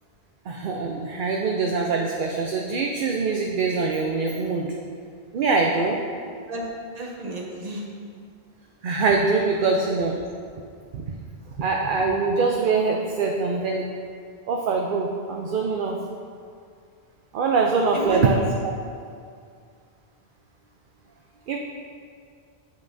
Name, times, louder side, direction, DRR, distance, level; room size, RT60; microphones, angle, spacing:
voice 1, 0.5-4.7 5.3-6.0 8.8-10.1 10.9-11.0 11.6-13.9 14.5-16.0 17.3-18.4 18.6-18.7 21.5-21.6, right 4 dB, 60° right, 0 dB, 0.6 m, -23 dB
voice 2, 6.9-7.9 9.6-10.1 17.9-18.3, right 2 dB, 40° right, -1 dB, 1.0 m, -32 dB
8.2 x 7.1 x 2.6 m, 2.2 s
omnidirectional pair, 1.1 m